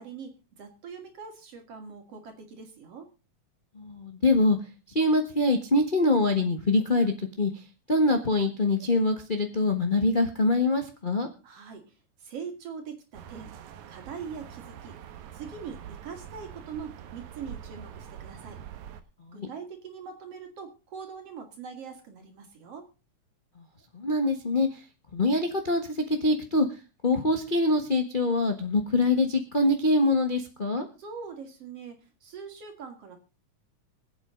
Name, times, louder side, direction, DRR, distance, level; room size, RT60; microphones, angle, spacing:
voice 1, 0.0-3.1 11.4-13.5 13.9-15.0 15.3-18.6 19.3-22.9 31.0-33.2, right 6 dB, 55° right, 5 dB, 3.3 m, -42 dB
voice 2, 3.7-4.6 4.9-11.3 19.2-19.5 23.6-23.7 23.9-24.8 25.1-26.7 27.0-30.9, left 2 dB, 55° left, 5 dB, 0.5 m, -24 dB
sound 1, 13.1-19.0, right 9 dB, 80° right, 2.5 m, -44 dB
24.5 x 8.4 x 3.8 m, 0.32 s
omnidirectional pair, 3.4 m